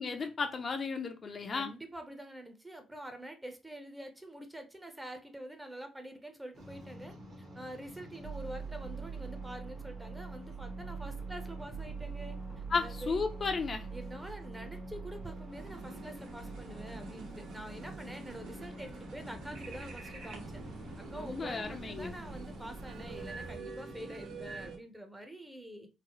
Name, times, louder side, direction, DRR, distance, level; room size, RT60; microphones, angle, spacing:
voice 1, 0.0-1.7 12.7-13.9 21.1-22.1, left 4 dB, 40° left, 0.5 m, -34 dB
voice 2, 1.5-13.2 13.9-20.5 21.0-25.9, right 1 dB, 10° right, 0.7 m, -46 dB
sound 1, 6.5-23.6, right 3 dB, 60° right, 1.6 m, -44 dB
sound 2, 15.5-24.8, right 3 dB, 80° right, 1.1 m, -46 dB
3.9 x 2.0 x 2.9 m
cardioid pair, 90°, 0 cm